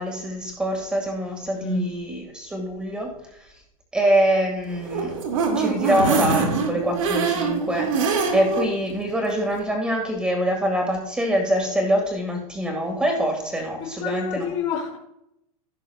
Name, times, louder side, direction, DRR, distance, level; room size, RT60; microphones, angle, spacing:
voice 1, 0.0-3.1 3.9-5.2 5.6-14.5, equal, 5° right, 1 dB, 2.0 m, -24 dB
voice 2, 1.5-1.9 13.8-15.0, left 4 dB, 35° left, -7 dB, 3.1 m, -28 dB
sound 1, 4.7-8.7 9.1-9.2 9.5-9.6, right 4 dB, 65° right, 2.6 m, -24 dB
16.0 x 7.3 x 2.4 m, 0.78 s
supercardioid pair, 175°, 19 cm